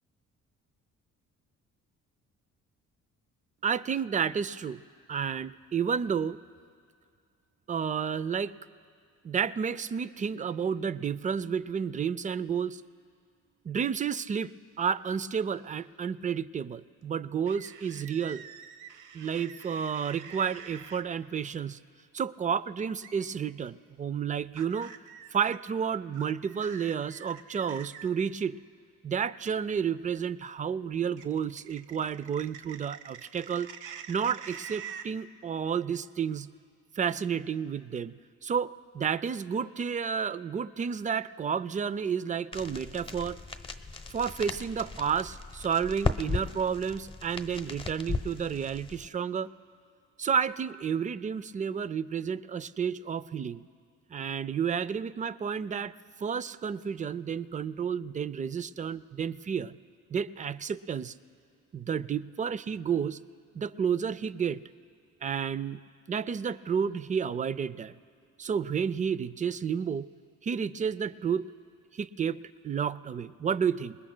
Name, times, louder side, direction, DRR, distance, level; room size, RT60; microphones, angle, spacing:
voice 1, 3.6-4.8 5.1-6.4 7.7-8.5 9.2-12.8 13.6-14.5 14.8-18.5 19.1-21.8 22.1-24.9 25.3-28.6 29.0-33.7 34.1-36.5 37.0-43.4 44.1-49.5 50.2-53.7 54.1-55.9 56.2-59.8 60.1-61.1 61.7-63.2 63.5-64.6 65.2-65.8 66.1-67.9 68.4-70.0 70.4-71.5 71.9-74.0, right 7 dB, 25° right, 17 dB, 0.4 m, -31 dB
sound 1, 17.5-21.0 23.0-23.3 24.5-25.6 26.1-28.1 31.2-35.1, right 7 dB, 85° right, 0.9 m, -46 dB
sound 2, 42.5-49.1, left 3 dB, 15° left, 0.8 m, -36 dB
27.0 x 21.0 x 2.2 m, 2.2 s
cardioid pair, 90°, 30 cm